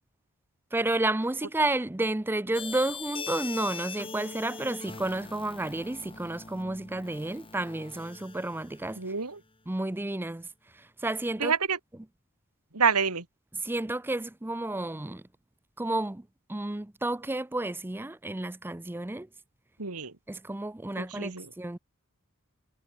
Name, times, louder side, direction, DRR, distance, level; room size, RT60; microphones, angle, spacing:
voice 1, 0.7-9.0 9.7-10.5 10.7-11.5 13.6-15.2 15.8-19.3 20.3-21.8, right 2 dB, 10° right, 0.5 m, -31 dB
sound 1, 2.5-9.3, left 4 dB, 25° left, 4.8 m, -42 dB
voice 2, 9.0-9.4 11.4-11.8 12.7-13.2 19.8-20.1 21.0-21.5, right 5 dB, 85° right, 2.3 m, -27 dB
head